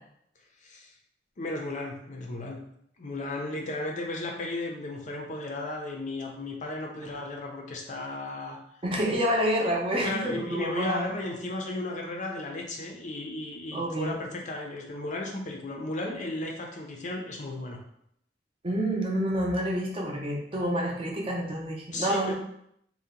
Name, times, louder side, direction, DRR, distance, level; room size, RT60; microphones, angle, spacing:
voice 1, 1.4-2.6 3.0-8.6 10.0-17.8 21.9-22.3, left 2 dB, 45° left, 1 dB, 0.5 m, -35 dB
voice 2, 8.8-11.1 13.7-14.1 18.6-22.3, equal, 30° right, -1 dB, 0.6 m, -28 dB
2.7 x 2.1 x 3.7 m, 0.72 s
head